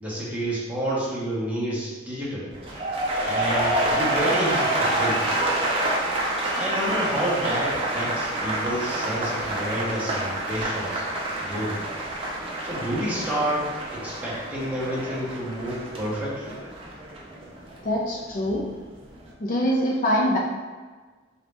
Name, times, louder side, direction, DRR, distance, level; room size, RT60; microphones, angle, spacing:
voice 1, 0.0-2.5 3.2-5.2 6.4-11.1 11.4-11.8 12.6-16.6, equal, 10° right, -8 dB, 1.0 m, -29 dB
sound 1, 2.5-18.6 18.9-19.3, right 1 dB, 30° right, 0.6 m, -28 dB
voice 2, 17.8-18.7 19.4-20.4, equal, 45° left, -2 dB, 0.5 m, -23 dB
4.0 x 2.7 x 3.4 m, 1.4 s
head